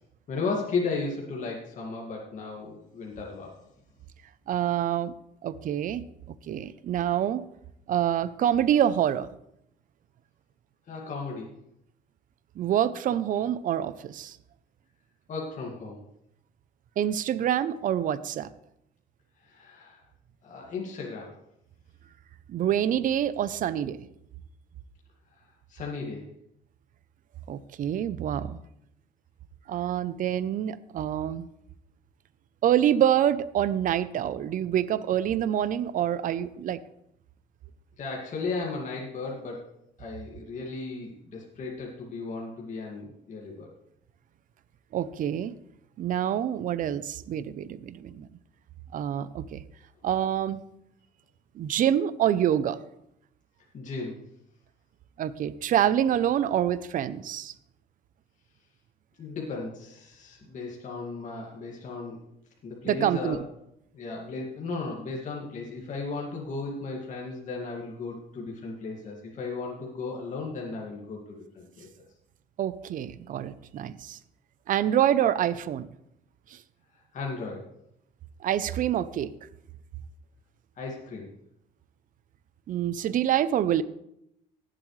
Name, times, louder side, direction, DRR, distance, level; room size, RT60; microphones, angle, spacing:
voice 1, 0.3-3.6 10.9-11.5 15.3-16.0 19.4-20.0 20.4-21.4 25.7-26.3 38.0-39.7 40.0-43.7 53.7-54.2 59.2-62.2 62.6-63.4 63.9-71.9 77.1-77.7 80.8-81.3, left 3 dB, 45° left, -2 dB, 2.1 m, -35 dB
voice 2, 4.5-5.1 5.4-6.0 6.5-7.5 7.9-9.3 12.6-14.4 17.0-18.5 22.5-24.1 27.5-28.6 29.7-31.5 32.6-36.8 44.9-45.5 46.0-48.3 48.9-49.6 50.0-50.6 51.5-52.8 55.2-57.5 62.8-63.4 72.6-74.2 74.7-75.9 78.4-79.3 82.7-83.8, right 10 dB, 55° right, 16 dB, 0.6 m, -26 dB
19.0 x 7.7 x 3.2 m, 0.78 s
cardioid pair, 110°, 17 cm